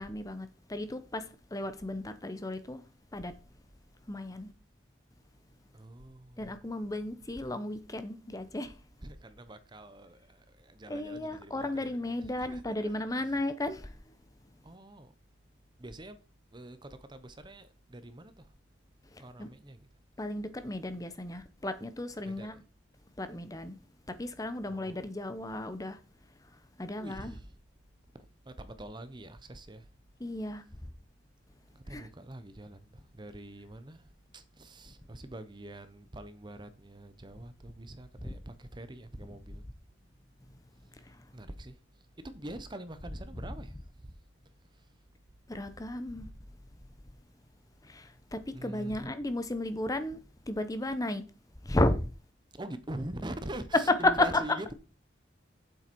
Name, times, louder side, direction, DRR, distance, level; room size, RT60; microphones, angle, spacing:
voice 1, 0.0-2.8 3.1-3.3 4.1-4.5 6.4-8.7 10.9-14.0 19.1-19.5 20.2-22.6 23.2-23.8 24.1-26.0 26.8-27.4 30.2-30.6 31.9-32.1 38.2-38.3 41.0-41.2 43.1-43.8 45.5-46.3 47.8-50.2 50.5-51.2 51.6-52.0 53.7-54.5, left 2 dB, 20° left, 0.8 m, -33 dB
voice 2, 5.7-6.6 9.0-11.9 12.4-12.9 14.6-15.1 15.8-16.2 16.5-18.5 19.2-19.9 22.2-22.6 24.7-25.0 27.0-27.5 28.1-29.9 31.7-39.7 41.3-41.8 42.2-44.2 44.7-44.9 48.5-49.1 52.5-54.7, right 1 dB, 25° right, 0.8 m, -45 dB
8.7 x 7.7 x 4.5 m
head